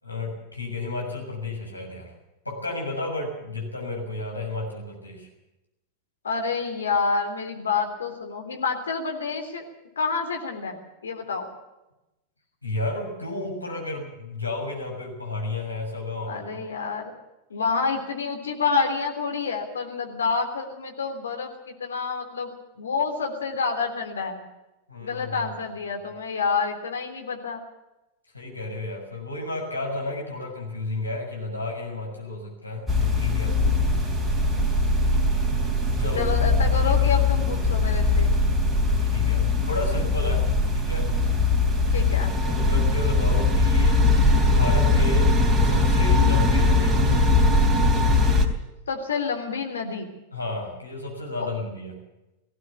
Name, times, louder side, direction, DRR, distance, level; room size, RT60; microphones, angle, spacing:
voice 1, 0.0-2.1 2.4-5.3 12.6-16.6 24.9-25.4 28.3-33.6 36.0-36.4 39.0-41.1 42.4-44.0 44.5-45.3 45.6-47.3 50.3-52.0, left 2 dB, 85° left, -1 dB, 6.6 m, -32 dB
voice 2, 6.2-9.7 10.0-10.8 11.0-11.5 16.3-17.1 17.5-22.5 22.8-24.4 25.0-27.6 34.5-34.7 36.2-38.3 41.9-42.4 48.9-50.1 51.4-51.5, left 5 dB, 70° left, 3 dB, 3.5 m, -28 dB
sound 1, 32.9-48.5, left 2 dB, 5° right, 3.6 m, -21 dB
19.5 x 16.0 x 8.5 m, 0.96 s
figure-of-eight pair, 90°, 0 cm